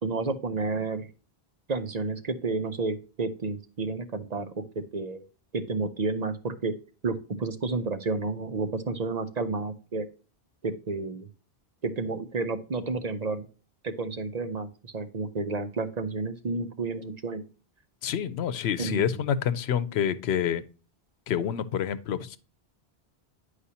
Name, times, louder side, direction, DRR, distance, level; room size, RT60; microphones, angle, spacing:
voice 1, 0.0-1.1 1.7-4.6 4.9-5.2 5.5-6.7 7.0-10.1 10.6-11.3 11.8-13.4 13.8-17.4 18.8-19.2, right 3 dB, 45° right, 9 dB, 0.7 m, -31 dB
voice 2, 18.0-20.6 21.3-22.4, left 8 dB, 90° left, 14 dB, 0.9 m, -27 dB
9.8 x 4.9 x 2.8 m, 0.36 s
omnidirectional pair, 1.1 m